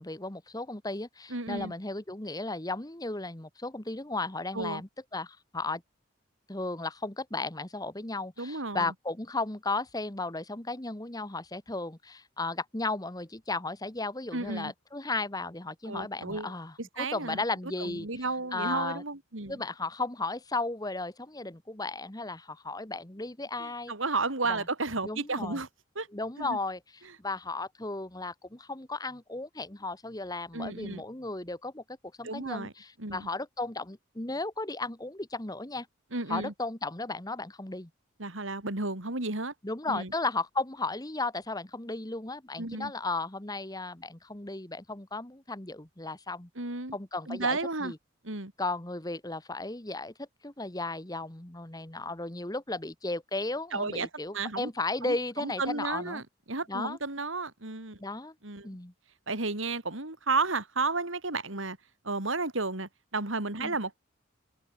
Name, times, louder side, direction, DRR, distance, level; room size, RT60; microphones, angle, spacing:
voice 1, 0.0-5.8 6.5-18.2 18.5-19.0 19.5-23.9 24.5-24.7 25.0-25.6 26.1-26.8 27.2-35.9 36.3-37.9 39.6-46.5 46.9-48.0 48.6-56.2 56.7-57.0 58.0-58.3 58.6-58.9 63.6-63.7, left 3 dB, 20° left, 1.5 m, -35 dB
voice 2, 1.3-1.7 4.5-4.8 8.4-8.9 14.3-14.7 15.9-16.5 16.8-17.4 17.8-19.6 23.6-25.7 26.0-26.1 26.4-26.6 30.5-31.0 32.2-32.7 33.0-33.3 36.1-36.5 38.2-39.5 39.9-40.1 42.6-42.9 46.6-47.0 47.3-47.9 48.2-48.5 53.7-54.1 54.3-54.7 55.0-58.0 58.4-58.7 59.3-61.8 62.0-64.0, right 3 dB, 75° right, 3.5 m, -33 dB
open air
head